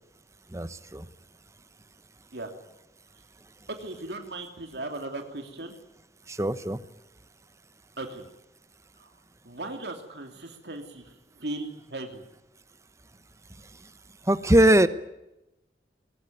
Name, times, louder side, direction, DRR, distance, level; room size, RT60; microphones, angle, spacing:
voice 1, 0.5-1.1 6.3-6.8 14.3-14.9, right 1 dB, 15° right, 13 dB, 1.0 m, -21 dB
voice 2, 3.7-5.7 8.0-8.2 9.0-9.1 9.4-12.2, right 2 dB, 70° right, 4 dB, 2.8 m, -37 dB
22.0 x 20.0 x 9.3 m, 0.91 s
head